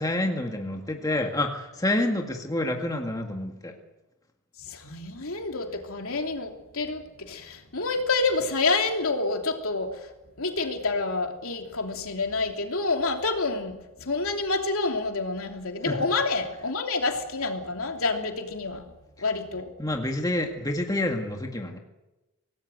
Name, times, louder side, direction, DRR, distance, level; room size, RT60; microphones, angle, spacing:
voice 1, 0.0-3.7 15.9-16.0 19.8-21.8, left 1 dB, 15° left, 2 dB, 2.0 m, -28 dB
voice 2, 4.6-9.9 10.4-18.8 19.2-19.7, left 3 dB, 70° left, 3 dB, 3.1 m, -28 dB
25.5 x 18.5 x 7.9 m, 1.0 s
head